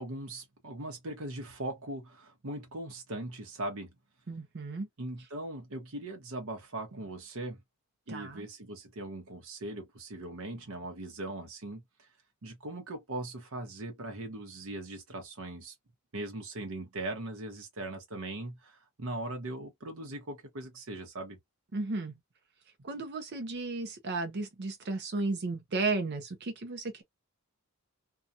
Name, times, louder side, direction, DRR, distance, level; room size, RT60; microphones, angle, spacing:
voice 1, 0.0-3.9 5.0-7.6 8.1-12.1 12.4-15.7 16.1-21.4, right 2 dB, 80° right, 0.9 m, -40 dB
voice 2, 4.3-4.9 8.1-8.5 21.7-22.2 22.8-27.0, right 3 dB, 50° right, 0.6 m, -34 dB
2.7 x 2.3 x 2.4 m
head